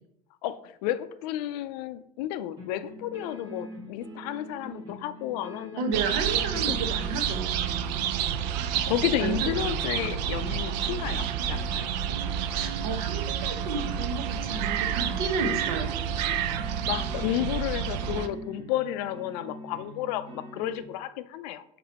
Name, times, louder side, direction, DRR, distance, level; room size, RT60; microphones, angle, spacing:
voice 1, 0.4-6.1 6.7-6.8 8.9-11.9 16.9-21.6, left 12 dB, 75° left, 14 dB, 0.4 m, -32 dB
sound 1, 2.6-20.8, right 1 dB, 20° right, 1.9 m, -44 dB
voice 2, 5.8-7.6 9.2-9.5 12.0-12.2 12.5-16.0, right 4 dB, 65° right, 6 dB, 1.0 m, -32 dB
sound 2, 5.9-18.3, right 8 dB, 85° right, 0.5 m, -29 dB
5.9 x 3.8 x 4.2 m, 0.74 s
cardioid pair, 180°, 21 cm